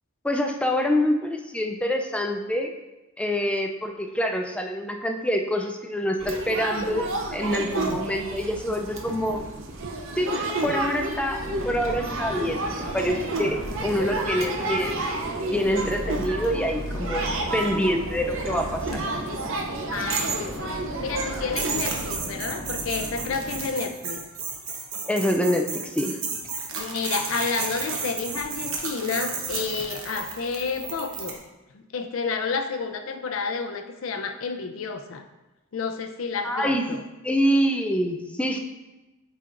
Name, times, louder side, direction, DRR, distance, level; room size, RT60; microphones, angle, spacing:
voice 1, 0.2-2.7 3.2-9.4 10.2-15.1 15.5-19.1 25.1-26.2 36.4-36.9 37.2-38.6, equal, 5° left, 3 dB, 0.3 m, -26 dB
sound 1, 6.2-22.2, right 2 dB, 70° right, 0.6 m, -30 dB
sound 2, 11.4-23.7, equal, 20° left, 1.3 m, -38 dB
voice 2, 19.9-24.3 26.7-31.4 31.7-35.2 35.7-37.0, left 5 dB, 75° left, 7 dB, 0.5 m, -30 dB
sound 3, 21.6-31.4, right 4 dB, 85° right, 1.0 m, -33 dB
8.8 x 4.3 x 2.5 m, 1.1 s
head